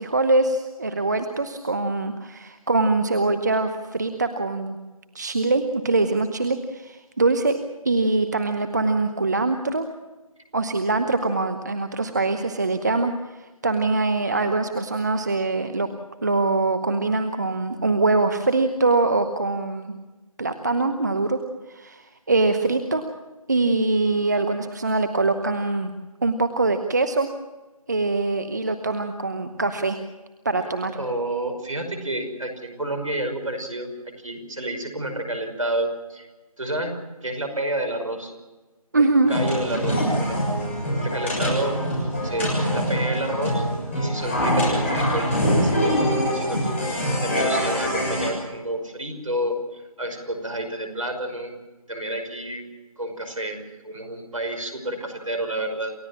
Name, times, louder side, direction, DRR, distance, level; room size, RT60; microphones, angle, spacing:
voice 1, 0.0-4.8 5.1-7.6 7.8-9.9 10.5-13.1 13.6-15.9 16.2-19.9 20.4-21.4 21.7-23.0 23.5-25.9 26.2-27.3 27.9-30.0 30.4-30.9 38.9-39.3, right 3 dB, 30° right, 9 dB, 1.0 m, -23 dB
voice 2, 30.9-33.9 34.2-36.3 36.6-38.3 39.0-40.4 41.0-41.8 42.2-43.6 43.9-45.3 45.6-51.5 51.9-52.6 53.0-55.9, right 1 dB, 65° right, 6 dB, 5.6 m, -30 dB
sound 1, 39.3-48.3, equal, 20° left, 7.1 m, -24 dB
28.5 x 15.5 x 7.3 m, 1.2 s
figure-of-eight pair, 165°, 19 cm